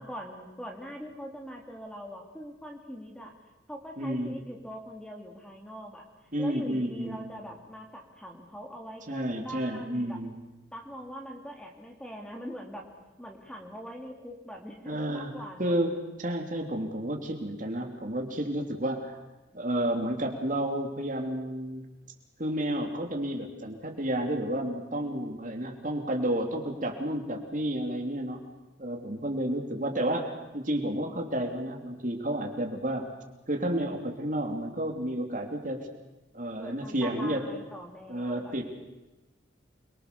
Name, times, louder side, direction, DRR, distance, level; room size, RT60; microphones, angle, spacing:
voice 1, 0.0-3.3 3.7-6.0 6.4-10.2 10.7-12.9 13.2-15.8 36.6-38.6, equal, 5° left, 1 dB, 3.2 m, -42 dB
voice 2, 4.0-4.4 6.3-7.3 9.1-10.3 14.8-15.3 15.6-19.2 19.5-21.8 22.4-28.4 28.8-33.1 33.5-35.9 36.3-37.5 38.1-38.6, right 1 dB, 45° right, 3 dB, 3.2 m, -31 dB
28.5 x 23.5 x 7.0 m, 1.1 s
head